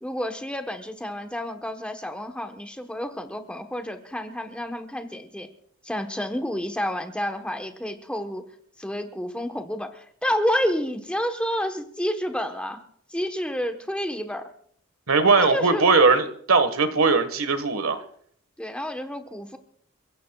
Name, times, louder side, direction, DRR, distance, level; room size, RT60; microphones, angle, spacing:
voice 1, 0.0-5.5 5.8-8.4 8.8-12.8 13.1-14.5 15.4-15.9 18.6-19.6, equal, 5° left, 5 dB, 1.1 m, -29 dB
voice 2, 15.1-18.0, right 4 dB, 80° right, 10 dB, 1.6 m, -19 dB
29.0 x 15.5 x 2.4 m, 0.63 s
head